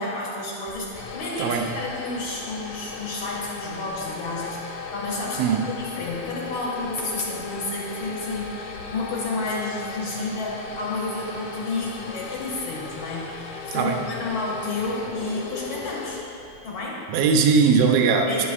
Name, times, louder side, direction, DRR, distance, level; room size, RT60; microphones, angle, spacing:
voice 1, 0.0-16.2 16.6-17.0 18.3-18.4, left 2 dB, 65° left, -4 dB, 1.2 m, -31 dB
sound 1, 0.7-16.9, left 4 dB, 85° left, 1.2 m, -37 dB
voice 2, 1.4-1.7 5.4-5.7 13.7-14.0 17.1-18.4, right 5 dB, 80° right, 3 dB, 1.4 m, -20 dB
11.0 x 6.1 x 2.5 m, 2.6 s
omnidirectional pair, 3.5 m